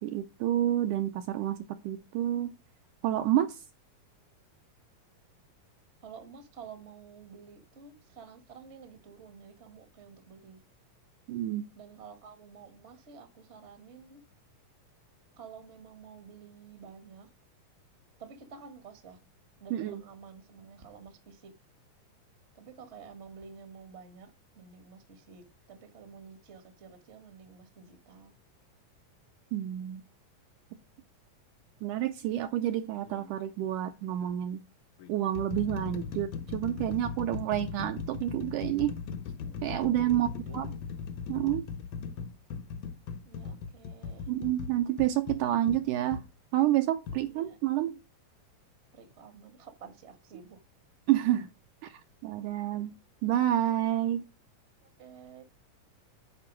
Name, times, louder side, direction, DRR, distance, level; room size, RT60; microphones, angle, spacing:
voice 1, 0.0-1.6 1.8-2.5 3.0-3.6 11.3-11.7 19.7-20.0 29.5-30.0 31.8-34.6 35.1-39.0 39.6-40.7 41.3-41.7 44.3-46.2 46.5-48.0 51.1-51.5 51.8-52.9 53.2-54.3, right 12 dB, 80° right, 1.9 m, -29 dB
voice 2, 6.0-10.6 11.8-14.2 15.4-17.3 18.2-19.2 19.6-21.5 22.5-24.3 24.6-28.3 39.4-40.6 43.2-44.3 47.2-47.6 48.9-50.6 55.0-55.4, right 6 dB, 50° right, 0.8 m, -50 dB
sound 1, 33.1-33.3 34.2-34.3 35.0-46.3 47.1-47.2, left 6 dB, 75° left, 1.9 m, -39 dB
9.7 x 4.4 x 6.0 m
omnidirectional pair, 4.0 m